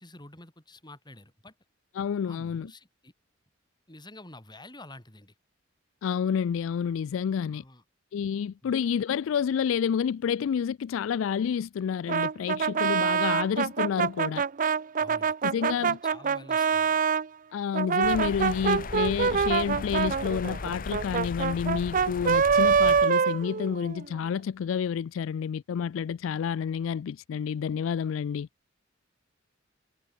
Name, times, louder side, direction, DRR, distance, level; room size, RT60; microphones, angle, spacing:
voice 1, 0.0-1.5 2.3-3.1 3.9-5.3 7.5-7.8 8.6-8.8 15.0-17.0, left 2 dB, 20° left, 7.4 m, -49 dB
voice 2, 2.0-2.7 6.0-7.6 8.1-14.4 15.4-16.0 17.5-28.5, left 7 dB, 70° left, 0.3 m, -29 dB
Brass instrument, 12.1-17.3 17.7-24.1, right 6 dB, 40° right, 0.5 m, -25 dB
sound 1, 18.0-23.1, left 3 dB, 45° left, 1.1 m, -37 dB
head